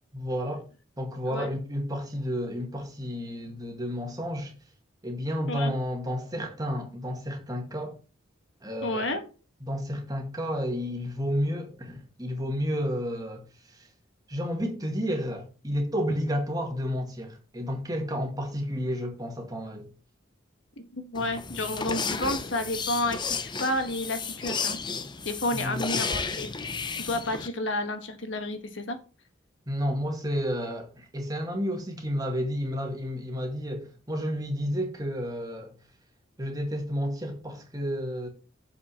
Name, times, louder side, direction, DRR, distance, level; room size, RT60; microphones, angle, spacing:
voice 1, 0.1-0.6 1.0-4.5 5.0-8.0 8.6-9.0 9.6-13.9 14.3-19.9 25.5-25.9 29.7-35.7 36.4-38.3, equal, 20° right, 2.1 m, -31 dB
voice 2, 8.8-9.2 20.9-24.8 25.2-26.5 27.0-29.0, left 1 dB, 70° left, 1.5 m, -30 dB
sound 1, 21.1-27.5, left 5 dB, 25° left, 0.6 m, -33 dB
7.4 x 5.8 x 5.8 m
head